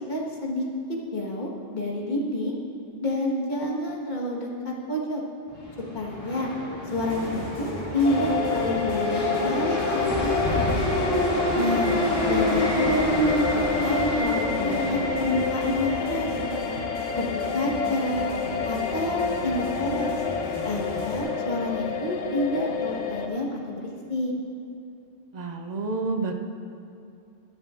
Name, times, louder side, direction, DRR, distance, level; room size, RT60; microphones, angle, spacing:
voice 1, 0.1-0.7 1.1-2.6 3.0-5.2 5.9-6.5 6.9-10.9 11.5-16.3 17.1-17.3 17.5-18.3 18.7-20.1 20.6-24.3, left 1 dB, 40° left, -2 dB, 1.5 m, -28 dB
sound 1, 5.5-21.4, left 1 dB, 20° left, 2.4 m, -29 dB
sound 2, 6.9-21.2, left 1 dB, 70° left, 2.4 m, -42 dB
sound 3, 8.0-23.3, left 6 dB, 85° left, 1.0 m, -29 dB
voice 2, 20.5-20.9 25.3-26.3, right 3 dB, 40° right, 4 dB, 0.7 m, -30 dB
14.5 x 10.5 x 2.5 m, 2.6 s
omnidirectional pair, 1.3 m